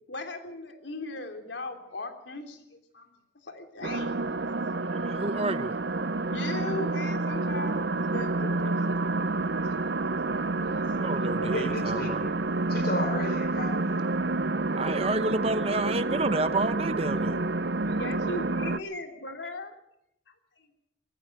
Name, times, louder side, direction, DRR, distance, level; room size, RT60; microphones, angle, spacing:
voice 1, 0.1-3.1 3.4-4.2 4.9-5.0 6.2-10.8 17.9-19.8 20.6-20.7, left 2 dB, 80° left, 5 dB, 3.3 m, -39 dB
sound 1, 3.8-18.8, right 2 dB, 65° right, 0.8 m, -29 dB
voice 2, 4.9-5.7 10.9-12.2 14.7-17.4, right 2 dB, 35° right, 12 dB, 1.0 m, -30 dB
voice 3, 11.3-12.3 12.7-14.0, left 2 dB, 55° left, 8 dB, 4.2 m, -34 dB
20.0 x 15.0 x 9.1 m, 0.82 s
head